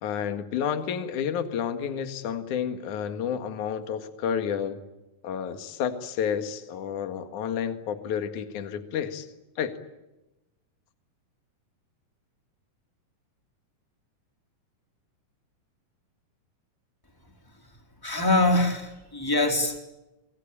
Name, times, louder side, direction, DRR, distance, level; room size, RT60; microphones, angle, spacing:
voice 1, 0.0-4.8 5.2-9.3 9.6-9.7, left 8 dB, 60° left, 8 dB, 3.1 m, -30 dB
voice 2, 18.0-19.8, left 2 dB, 5° left, 4 dB, 4.1 m, -23 dB
27.0 x 24.0 x 8.7 m, 1.0 s
omnidirectional pair, 4.1 m